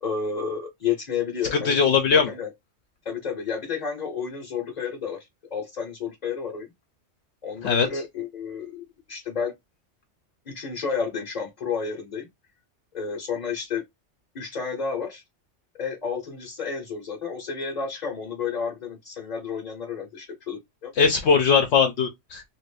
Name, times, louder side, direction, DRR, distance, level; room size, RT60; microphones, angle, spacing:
voice 1, 0.0-1.9 2.3-2.5 3.0-6.7 7.4-9.5 10.5-12.3 12.9-13.8 14.3-15.2 15.7-20.9, left 6 dB, 40° left, 0.8 m, -31 dB
voice 2, 1.7-2.3 7.6-7.9 21.0-22.4, left 6 dB, 70° left, 0.8 m, -20 dB
2.7 x 2.5 x 3.2 m
omnidirectional pair, 1.3 m